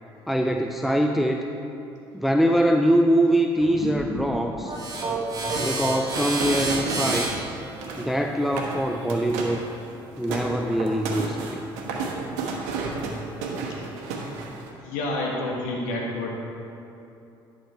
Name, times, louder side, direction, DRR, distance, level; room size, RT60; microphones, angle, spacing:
voice 1, 0.3-1.5 2.1-4.7 5.6-7.3 8.0-9.6 10.2-11.6, right 1 dB, ahead, 3 dB, 0.5 m, -23 dB
sound 1, 3.6-8.3, left 3 dB, 60° left, 1.2 m, -39 dB
sound 2, 4.6-9.8, right 3 dB, 30° right, 2.2 m, -31 dB
sound 3, 5.5-7.3 7.6-8.1 8.4-8.8 9.1-9.6 10.0-14.7, right 4 dB, 75° right, 1.1 m, -32 dB
voice 2, 13.7-14.2 14.8-16.3, left 2 dB, 75° left, -2 dB, 1.6 m, -30 dB
10.5 x 6.1 x 4.3 m, 2.8 s
hypercardioid pair, 55°, 13 cm